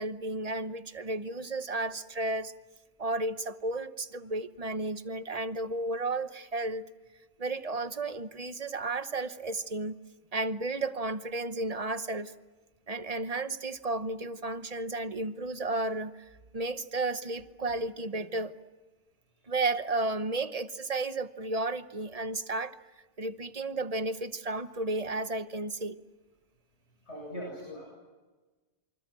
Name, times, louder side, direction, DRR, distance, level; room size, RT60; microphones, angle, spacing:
voice 1, 0.0-2.5 3.0-6.8 7.4-9.9 10.3-12.3 12.9-16.1 16.5-18.6 19.5-22.7 23.2-26.0, right 2 dB, 35° right, 11 dB, 1.0 m, -33 dB
voice 2, 27.1-27.9, equal, 80° left, -2 dB, 8.5 m, -40 dB
28.0 x 25.5 x 7.6 m, 1.3 s
omnidirectional pair, 1.1 m